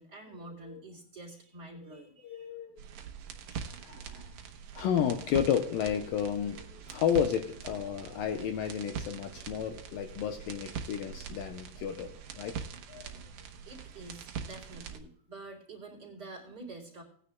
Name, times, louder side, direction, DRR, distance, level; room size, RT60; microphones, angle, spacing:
voice 1, 0.0-2.6 4.4-4.8 13.7-17.0, right 2 dB, 25° right, -3 dB, 3.6 m, -48 dB
voice 2, 1.8-2.9 3.6-4.3 4.7-12.6 12.9-13.1, left 8 dB, 75° left, 6 dB, 2.3 m, -32 dB
sound 1, 2.8-15.0, right 7 dB, 65° right, 1.9 m, -43 dB
20.0 x 9.9 x 2.3 m, 0.62 s
omnidirectional pair, 4.6 m